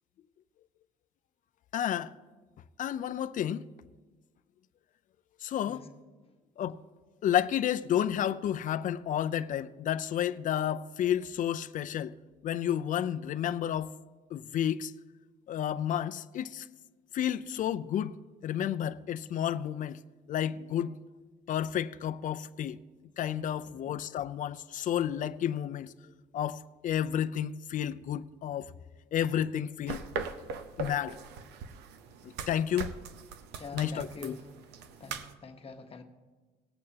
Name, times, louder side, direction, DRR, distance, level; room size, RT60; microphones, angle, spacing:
voice 1, 1.7-2.1 2.8-3.7 5.4-5.8 6.6-6.8 7.2-12.1 12.4-13.9 14.3-14.9 15.5-16.7 17.1-18.2 18.4-20.0 20.3-21.0 21.5-22.8 23.2-25.9 26.3-28.7 29.1-30.1 30.8-31.2 32.2-32.9 33.7-34.3, left 10 dB, 50° left, 0.5 m, -31 dB
sound 1, 29.9-35.3, right 5 dB, 85° right, 0.8 m, -40 dB
voice 2, 33.5-34.5 35.0-36.0, left 4 dB, 35° left, 1.1 m, -45 dB
19.5 x 8.5 x 2.8 m
cardioid pair, 110°, 17 cm